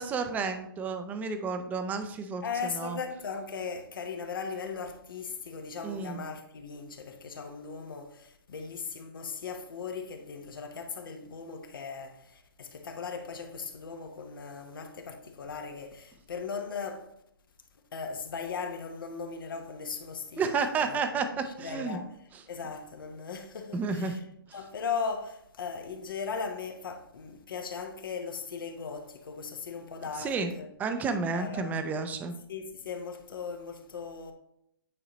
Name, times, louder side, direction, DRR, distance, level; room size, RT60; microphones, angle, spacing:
voice 1, 0.0-2.4 2.8-3.0 5.8-6.2 20.4-22.0 23.7-24.2 30.2-30.5 30.8-32.4, right 4 dB, 15° right, 0.5 m, -31 dB
voice 2, 2.4-17.1 17.9-21.0 21.4-22.2 22.5-24.2 24.5-30.7 31.3-31.9 32.5-34.3, left 5 dB, 65° left, 0.9 m, -38 dB
9.0 x 3.9 x 2.9 m
hypercardioid pair, 135°, 12 cm